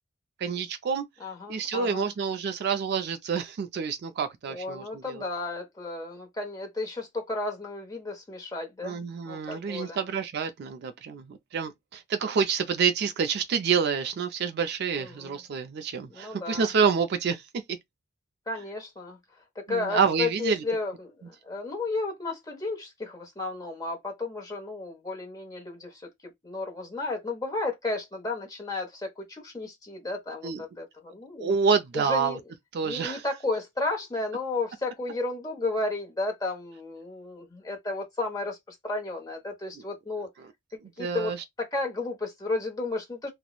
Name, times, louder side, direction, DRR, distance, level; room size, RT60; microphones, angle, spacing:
voice 1, 0.4-1.0 1.5-5.2 8.8-17.4 19.7-20.6 30.4-30.6 31.4-32.4 32.7-33.2 41.0-41.4, right 6 dB, 50° right, 0.3 m, -28 dB
voice 2, 1.2-2.1 4.5-10.0 14.9-15.4 16.1-16.7 18.5-19.2 19.6-31.5 31.9-32.4 32.8-40.3 41.0-41.3 41.6-43.3, left 2 dB, 15° left, 0.7 m, -33 dB
2.9 x 2.0 x 2.3 m
head